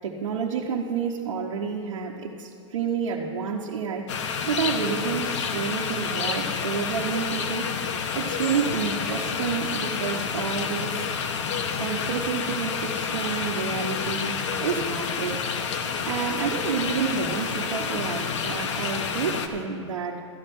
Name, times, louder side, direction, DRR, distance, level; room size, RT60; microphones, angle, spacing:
voice 1, 0.0-7.7 8.1-11.1 11.8-15.4 16.1-20.2, right 6 dB, 85° right, -3 dB, 1.1 m, -29 dB
sound 1, 4.1-19.5, left 6 dB, 70° left, 1.0 m, -29 dB
13.5 x 10.0 x 4.4 m, 2.4 s
hypercardioid pair, 145°, 16 cm